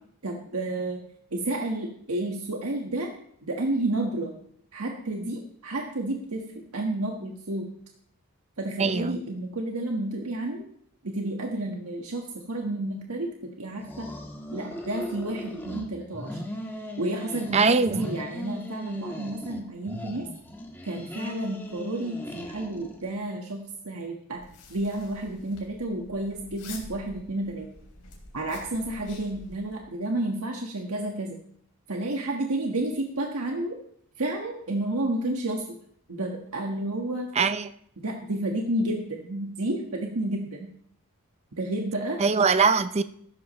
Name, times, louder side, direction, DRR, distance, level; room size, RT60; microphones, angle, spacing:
voice 1, 0.2-1.0 1.3-3.1 3.4-4.4 4.7-7.7 8.6-10.6 11.0-14.1 14.5-16.4 17.0-20.3 20.8-24.4 24.7-27.7 28.3-31.4 31.9-33.8 34.2-35.8 36.1-37.3 38.0-40.7 41.6-42.2, right 1 dB, 80° right, 1.5 m, -31 dB
voice 2, 8.8-9.2 17.5-18.0 37.4-37.7 42.2-43.0, right 4 dB, 30° right, 0.4 m, -22 dB
sound 1, 13.8-15.8 16.1-17.6 17.9-19.6 19.9-23.1, left 1 dB, 10° left, 1.6 m, -38 dB
sound 2, 24.3-29.8, left 2 dB, 80° left, 3.6 m, -47 dB
15.5 x 13.0 x 3.1 m
head